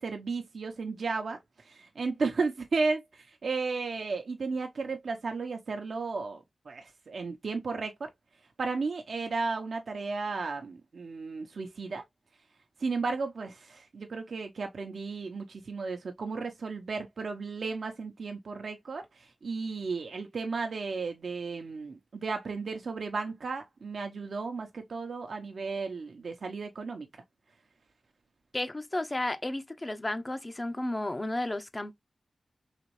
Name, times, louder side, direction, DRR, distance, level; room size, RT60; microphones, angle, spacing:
voice 1, 0.0-1.4 1.6-8.1 8.6-12.0 12.8-27.1, right 4 dB, 70° right, 0.8 m, -34 dB
voice 2, 28.5-31.9, left 1 dB, 25° left, 0.6 m, -33 dB
4.1 x 3.0 x 3.1 m
wide cardioid pair, 80°, 0 cm